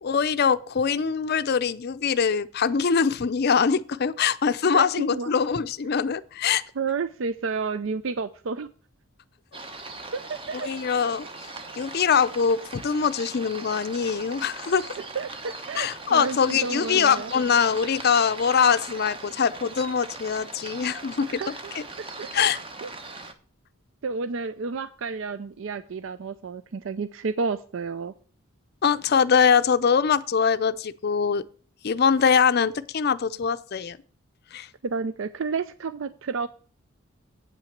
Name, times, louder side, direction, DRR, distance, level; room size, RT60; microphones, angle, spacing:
voice 1, 0.0-6.6 10.5-11.3 11.7-14.9 15.7-21.4 21.7-21.8 22.3-22.6 28.8-31.4 31.8-34.0 34.5-34.7, left 6 dB, 50° left, 0.5 m, -23 dB
voice 2, 4.7-5.3 6.8-8.7 10.1-10.7 15.2-17.3 21.2-21.5 22.2-22.3 22.8-22.9 24.0-28.1 34.8-36.5, right 4 dB, 65° right, 0.4 m, -31 dB
sound 1, 9.5-23.3, right 3 dB, 25° right, 0.9 m, -40 dB
8.4 x 5.9 x 7.1 m
head